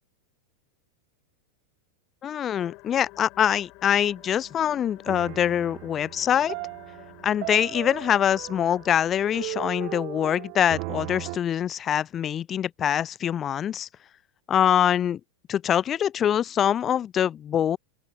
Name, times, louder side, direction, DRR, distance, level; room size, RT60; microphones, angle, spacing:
voice 1, 2.2-6.5 7.2-13.9 14.5-15.2 15.5-17.8, left 9 dB, 25° left, 0.5 m, -24 dB
sound 1, 2.5-10.0, left 24 dB, 40° left, 7.2 m, -51 dB
sound 2, 3.9-4.3 5.1-11.4, right 40 dB or more, 45° right, 3.4 m, -38 dB
open air
figure-of-eight pair, 90°, 0 cm